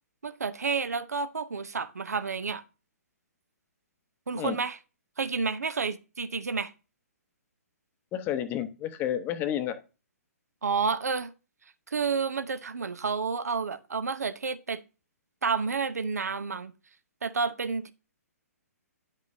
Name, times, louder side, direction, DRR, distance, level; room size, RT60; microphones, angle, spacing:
voice 1, 0.2-2.6 4.3-4.8 5.2-6.7 10.6-11.3 11.9-14.8 15.4-16.7 17.2-17.9, right 5 dB, 75° right, 0.7 m, -30 dB
voice 2, 8.1-9.8, left 10 dB, 25° left, 0.8 m, -30 dB
10.0 x 5.4 x 2.7 m
figure-of-eight pair, 125°, 9 cm